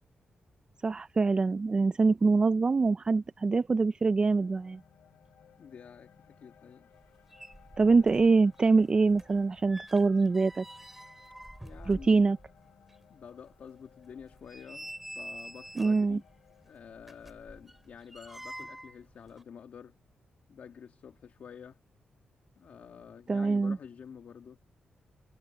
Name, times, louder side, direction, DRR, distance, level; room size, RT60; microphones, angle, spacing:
voice 1, 0.8-4.8 7.8-10.6 11.9-12.4 15.8-16.2 23.3-23.8, right 4 dB, 30° right, 0.4 m, -24 dB
sound 1, 4.4-20.6, left 9 dB, 80° left, 6.1 m, -62 dB
voice 2, 5.6-6.9 11.6-12.2 13.1-16.2 16.6-20.0 20.5-21.8 22.6-24.6, left 7 dB, 65° left, 1.6 m, -49 dB
sound 2, 7.0-7.1 7.3-8.3 8.6-12.5 12.9-13.0 13.5-13.6 14.2-16.1 17.0-19.0 19.3-19.4, right 1 dB, 5° right, 3.5 m, -46 dB
wide cardioid pair, 120°, 3 cm